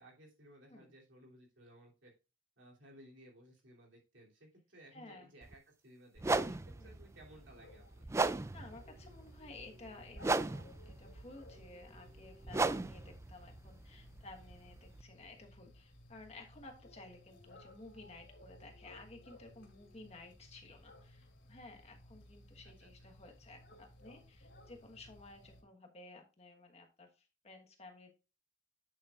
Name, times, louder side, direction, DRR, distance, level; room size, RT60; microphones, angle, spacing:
voice 1, 0.0-2.1 2.6-8.1 22.6-23.1, right 1 dB, 75° right, -1 dB, 3.0 m, -59 dB
voice 2, 4.9-5.3 6.8-6.9 8.5-28.1, left 2 dB, 35° left, 4 dB, 1.3 m, -55 dB
sound 1, 5.4-5.5 6.2-15.0, right 3 dB, 15° right, 0.3 m, -37 dB
sound 2, 7.1-25.6, left 1 dB, 75° left, 2.6 m, -59 dB
8.9 x 7.1 x 2.4 m, 0.30 s
head